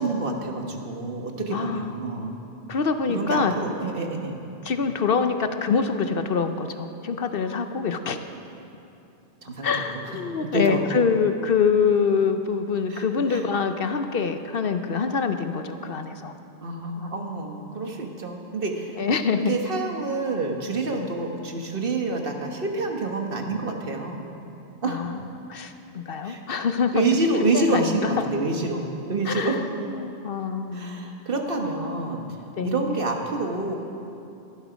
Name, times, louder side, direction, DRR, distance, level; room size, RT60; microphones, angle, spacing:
voice 1, 0.0-2.3 3.1-4.4 9.4-10.0 10.5-10.8 12.9-13.4 16.6-19.1 19.4-24.2 24.8-25.1 26.2-26.4 26.9-29.6 30.7-32.4 32.6-33.8, right 3 dB, 50° right, 2 dB, 1.5 m, -27 dB
voice 2, 1.5-1.9 2.7-3.5 4.6-8.2 9.6-16.3 17.0-17.1 19.0-19.5 20.9-21.1 24.8-25.2 25.5-27.0 27.5-28.2 29.3-29.6 29.9-31.1 31.5-32.0 32.6-32.9, left 5 dB, 55° left, 8 dB, 0.9 m, -25 dB
17.5 x 12.0 x 5.1 m, 2.8 s
omnidirectional pair, 1.2 m